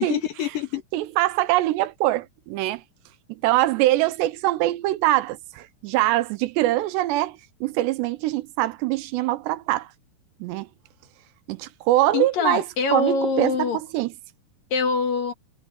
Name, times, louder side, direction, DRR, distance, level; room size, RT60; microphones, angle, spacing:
voice 1, 0.0-0.8 12.1-13.8 14.7-15.3, left 5 dB, 60° left, 3.2 m, -24 dB
voice 2, 0.9-2.8 3.3-9.9 10.4-10.7 11.5-12.6 12.9-14.1, right 16 dB, 85° right, 3.0 m, -23 dB
omnidirectional pair, 4.9 m